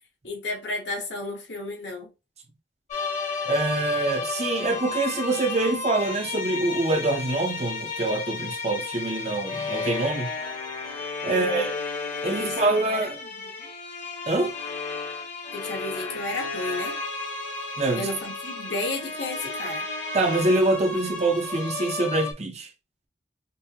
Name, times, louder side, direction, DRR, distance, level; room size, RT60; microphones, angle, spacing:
voice 1, 0.2-2.1 11.2-11.7 12.2-12.6 12.9-13.7 15.5-17.0 17.9-19.9, left 2 dB, 85° left, 1.4 m, -33 dB
sound 1, 2.9-22.3, left 4 dB, 45° left, 1.2 m, -33 dB
voice 2, 3.4-10.3 11.2-11.8 12.2-13.2 14.3-14.5 17.8-18.1 20.1-22.7, right 2 dB, 40° right, 0.7 m, -25 dB
5.2 x 2.1 x 2.8 m
head